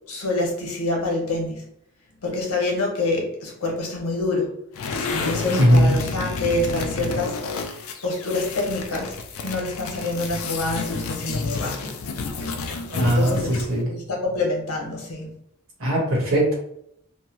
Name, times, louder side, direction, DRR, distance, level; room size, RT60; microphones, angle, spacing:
voice 1, 0.1-1.6 2.2-4.5 5.1-12.0 13.0-13.6 13.9-15.3, left 2 dB, 90° left, -1 dB, 1.0 m, -27 dB
sound 1, 4.7-13.8, left 4 dB, 70° left, 0.4 m, -30 dB
voice 2, 5.5-6.0 12.7-13.9 15.8-16.6, equal, 60° right, -3 dB, 1.2 m, -20 dB
2.8 x 2.2 x 3.0 m, 0.74 s
head